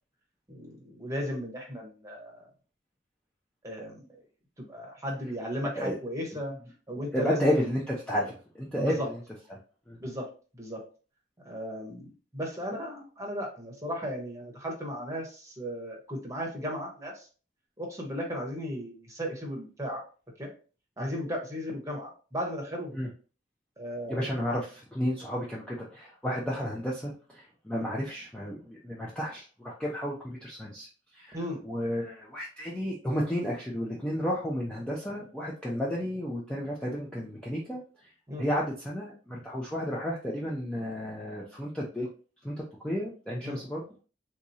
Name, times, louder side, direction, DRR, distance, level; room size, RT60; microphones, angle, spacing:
voice 1, 0.5-2.5 3.6-4.0 4.6-6.6 6.9-7.5 8.8-9.1 10.0-10.3 10.5-10.8 11.4-17.3 17.8-20.0 20.4-20.5 21.0-22.9 23.8-24.3 31.3-31.6 38.3-38.5 43.4-43.6, equal, 15° right, 0 dB, 0.9 m, -35 dB
voice 2, 7.1-9.2 9.5-9.6 9.9-10.0 21.0-21.1 22.9-23.1 24.1-31.4 31.6-38.1 38.4-42.1 42.4-44.0, equal, 5° left, -4 dB, 0.4 m, -32 dB
3.5 x 2.9 x 2.7 m, 0.36 s
head